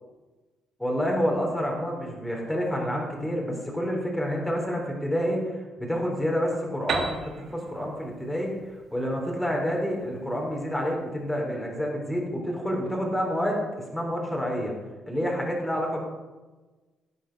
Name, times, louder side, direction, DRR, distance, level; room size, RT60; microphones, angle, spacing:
voice 1, 0.8-8.5 8.9-13.6 13.9-14.7 15.1-16.0, equal, 5° left, -2 dB, 3.9 m, -28 dB
Piano, 6.9-10.5, right 5 dB, 60° right, 2.2 m, -35 dB
16.5 x 9.3 x 6.7 m, 1.2 s
cardioid pair, 145°, 0 cm